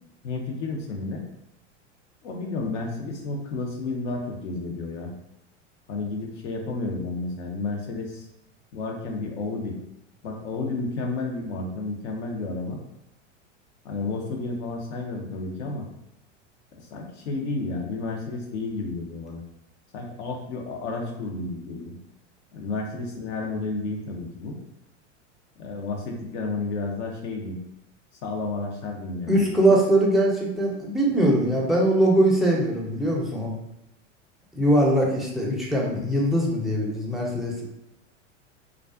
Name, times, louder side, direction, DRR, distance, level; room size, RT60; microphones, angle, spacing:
voice 1, 0.2-1.2 2.2-5.1 5.9-8.2 8.7-9.8 10.2-12.8 13.8-15.9 16.9-19.4 19.9-21.9 22.5-24.6 25.6-27.6 28.2-29.4, left 3 dB, 65° left, 1 dB, 0.8 m, -31 dB
voice 2, 29.3-33.5 34.5-37.5, right 1 dB, ahead, -4 dB, 0.5 m, -21 dB
2.4 x 2.3 x 2.3 m, 0.86 s
hypercardioid pair, 95°, 37 cm